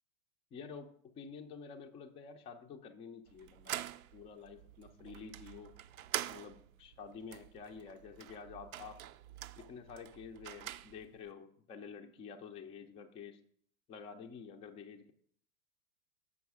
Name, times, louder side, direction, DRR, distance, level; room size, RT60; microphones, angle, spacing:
voice 1, 0.5-3.8 4.1-5.7 6.3-9.0 9.6-13.4 13.9-15.1, left 5 dB, 15° left, 5 dB, 0.4 m, -49 dB
sound 1, 3.3-11.3, right 13 dB, 75° right, 0.5 m, -45 dB
7.1 x 5.5 x 4.7 m, 0.63 s
hypercardioid pair, 110°, 43 cm